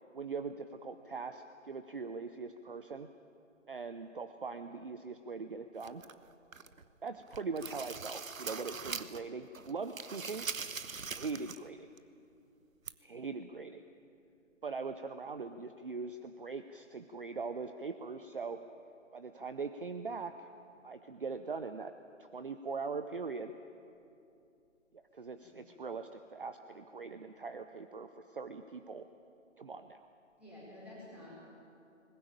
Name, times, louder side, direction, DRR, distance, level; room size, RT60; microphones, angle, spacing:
voice 1, 0.0-3.1 3.7-6.0 7.0-10.5 11.0-11.9 13.0-13.8 14.6-18.6 19.1-20.5 20.8-21.9 22.2-23.5 25.1-29.1 29.6-30.1, right 4 dB, 40° right, 9 dB, 0.7 m, -41 dB
sound 1, 5.8-6.8 7.2-9.3 9.5-11.7 12.0-12.1 12.9-13.0, right 5 dB, 80° right, 1.1 m, -42 dB
voice 2, 30.4-31.4, left 1 dB, 5° right, -8 dB, 4.7 m, -51 dB
20.5 x 19.0 x 9.0 m, 2.7 s
figure-of-eight pair, 160°, 40 cm